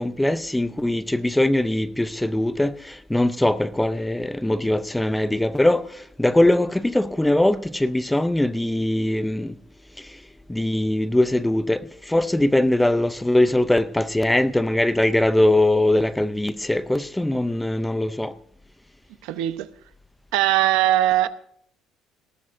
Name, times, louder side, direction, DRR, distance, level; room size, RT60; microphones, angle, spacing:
voice 1, 0.0-5.8 6.2-9.5 10.5-18.3, left 1 dB, 5° left, 0.5 m, -21 dB
voice 2, 19.2-19.7 20.3-21.3, right 13 dB, 85° right, 0.8 m, -20 dB
18.5 x 18.0 x 2.6 m
cardioid pair, 140°, 0 cm